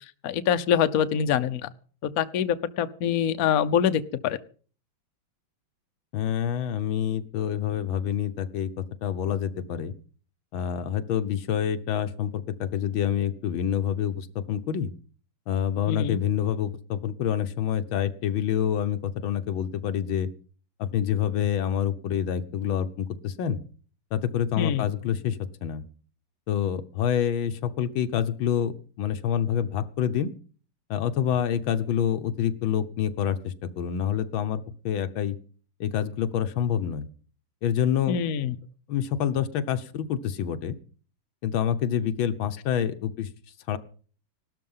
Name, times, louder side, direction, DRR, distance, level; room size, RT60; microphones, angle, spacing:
voice 1, 0.2-1.7 2.0-4.4 15.9-16.2 24.6-24.9 38.1-38.6, left 8 dB, 55° left, 10 dB, 1.1 m, -25 dB
voice 2, 6.1-9.9 10.5-14.9 15.5-20.3 20.8-23.6 24.1-25.8 26.5-30.3 30.9-35.4 35.8-37.1 37.6-38.2 38.9-40.8 41.4-43.3 43.7-43.8, left 9 dB, 85° left, 9 dB, 1.8 m, -27 dB
17.5 x 13.0 x 5.6 m, 0.43 s
omnidirectional pair, 2.1 m